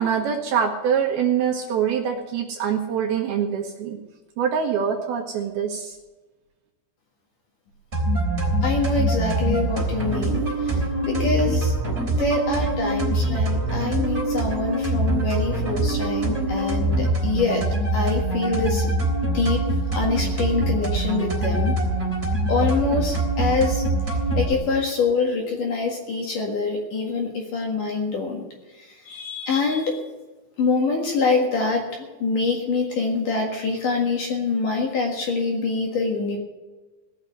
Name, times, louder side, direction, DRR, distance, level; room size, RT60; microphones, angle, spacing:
voice 1, 0.0-4.0 4.4-6.0, right 7 dB, 70° right, 1 dB, 2.7 m, -24 dB
sound 1, 7.9-24.5, right 2 dB, 15° right, 3.3 m, -24 dB
voice 2, 8.6-11.7 12.2-17.6 17.9-18.9 19.3-19.7 19.9-21.8 22.5-23.8 24.4-28.4 28.8-30.0 30.6-36.4, left 4 dB, 55° left, 0 dB, 2.7 m, -25 dB
18.5 x 6.5 x 9.4 m, 1.2 s
omnidirectional pair, 5.5 m